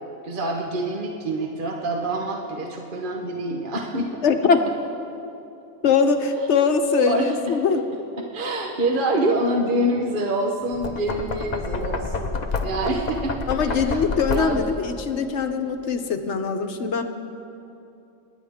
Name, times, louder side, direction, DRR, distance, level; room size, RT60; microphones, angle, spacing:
voice 1, 0.2-4.2 6.4-6.5 7.1-7.3 8.3-13.4 13.7-14.0 14.3-14.6, right 1 dB, 40° right, 0 dB, 1.1 m, -26 dB
voice 2, 4.2-4.6 5.8-7.8 13.5-17.0, left 5 dB, 60° left, 7 dB, 1.1 m, -22 dB
Knock, 10.7-14.8, left 4 dB, 40° left, 0.7 m, -29 dB
28.5 x 10.0 x 3.6 m, 2.8 s
omnidirectional pair, 1.4 m